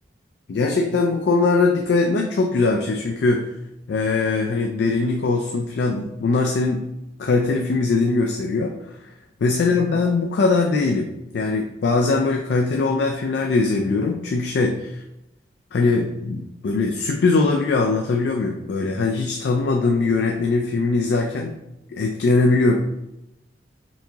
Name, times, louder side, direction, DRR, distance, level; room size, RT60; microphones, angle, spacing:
voice 1, 0.5-3.4 3.9-6.8 7.2-8.7 9.4-14.8 15.7-21.5 21.9-22.8, left 3 dB, 70° left, 2 dB, 0.3 m, -21 dB
4.4 x 2.9 x 2.7 m, 0.89 s
head